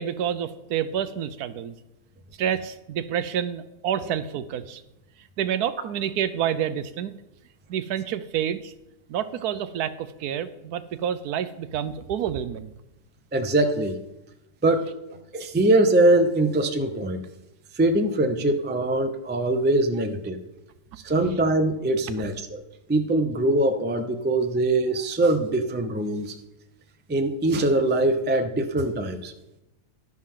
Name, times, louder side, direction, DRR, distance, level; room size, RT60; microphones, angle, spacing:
voice 1, 0.0-1.7 2.4-4.8 5.4-7.1 7.7-8.7 9.1-12.7, right 9 dB, 75° right, 13 dB, 1.1 m, -28 dB
voice 2, 13.3-14.0 14.6-14.9 15.3-17.2 17.8-20.4 21.0-22.6 22.9-26.3 27.1-29.3, right 2 dB, 15° right, 6 dB, 0.3 m, -22 dB
12.0 x 10.5 x 3.7 m, 0.92 s
omnidirectional pair, 1.7 m